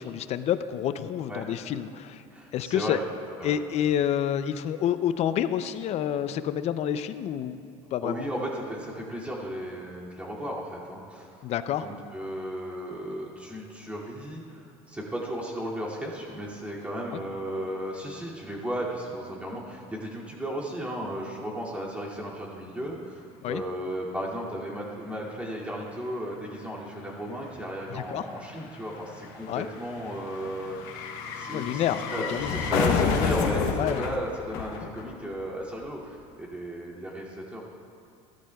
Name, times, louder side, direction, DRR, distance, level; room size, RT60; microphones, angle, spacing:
voice 1, 0.0-2.2 2.5-3.0 3.4-7.6 7.9-8.3 11.4-11.9 17.1-17.2 23.4-23.6 27.9-28.3 29.5-29.7 31.5-32.5 33.8-34.0, left 10 dB, 50° left, 12 dB, 0.5 m, -28 dB
voice 2, 2.3-3.0 3.4-3.6 8.0-11.4 11.8-30.8 31.3-31.8 32.1-37.6, equal, 10° right, -4 dB, 2.5 m, -35 dB
sound 1, 24.8-24.9 25.1-35.5 35.7-35.8, left 6 dB, 75° left, 1.1 m, -31 dB
16.5 x 13.0 x 2.3 m, 2.7 s
cardioid pair, 115°, 14 cm